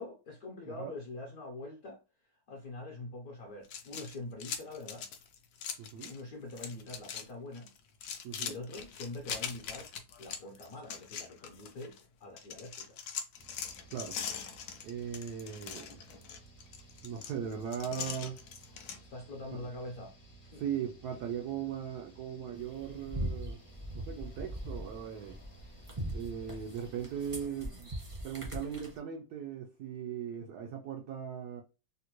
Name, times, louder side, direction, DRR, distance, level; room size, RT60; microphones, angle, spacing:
voice 1, 0.0-2.0 2.5-5.1 6.1-7.7 8.4-9.9 10.2-13.0 19.0-20.1 20.5-20.6, left 2 dB, 65° left, 0.9 m, -44 dB
sound 1, 3.6-6.2 6.5-7.3 7.5-12.0 12.4-19.0, left 7 dB, 90° left, 0.8 m, -42 dB
voice 2, 5.8-6.1 8.2-8.6 13.9-14.2 14.8-16.0 17.0-18.4 19.5-19.7 20.6-23.6 23.9-25.4 26.1-27.9 28.2-31.6, right 8 dB, 90° right, 0.8 m, -39 dB
sound 2, 13.3-27.5, right 3 dB, 45° left, 0.7 m, -57 dB
sound 3, 22.6-29.0, equal, 35° right, 0.5 m, -41 dB
3.8 x 2.1 x 2.9 m
omnidirectional pair, 2.3 m